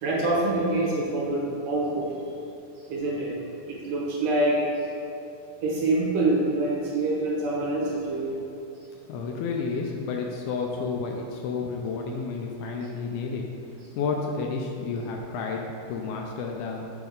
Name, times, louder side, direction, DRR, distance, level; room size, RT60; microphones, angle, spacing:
voice 1, 0.0-2.2 2.9-3.3 3.7-4.6 5.6-8.4, right 2 dB, 70° right, -4 dB, 2.3 m, -25 dB
voice 2, 9.1-13.4 14.0-16.9, left 4 dB, 80° left, 1 dB, 2.3 m, -31 dB
7.0 x 3.4 x 5.1 m, 2.6 s
omnidirectional pair, 4.6 m